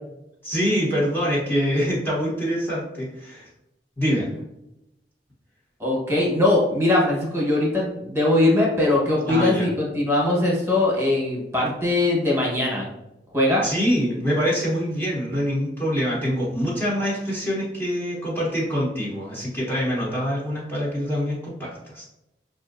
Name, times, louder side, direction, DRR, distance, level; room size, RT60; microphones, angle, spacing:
voice 1, 0.4-3.4 4.0-4.3 9.3-9.7 13.6-22.0, equal, 10° left, -6 dB, 0.9 m, -25 dB
voice 2, 5.8-12.9 13.3-13.6, left 2 dB, 15° right, -4 dB, 1.1 m, -21 dB
5.6 x 2.5 x 2.5 m, 0.88 s
head